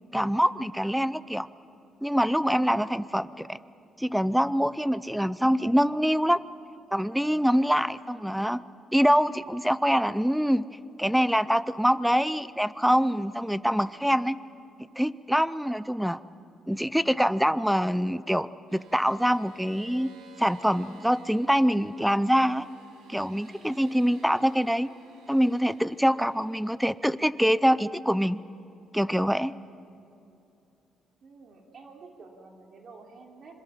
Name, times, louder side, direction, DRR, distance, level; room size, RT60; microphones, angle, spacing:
voice 1, 0.1-1.5 2.0-3.6 4.0-6.4 6.9-8.6 8.9-10.6 11.0-14.4 15.0-16.2 16.7-20.1 20.4-22.7 23.1-24.9 25.3-28.4 28.9-29.5, equal, ahead, 17 dB, 0.6 m, -24 dB
sound 1, 18.7-29.5, right 4 dB, 85° right, 3.7 m, -55 dB
voice 2, 31.2-33.6, right 4 dB, 55° right, 1 dB, 3.0 m, -49 dB
26.5 x 22.0 x 5.8 m, 2.7 s
cardioid pair, 90°, 0 cm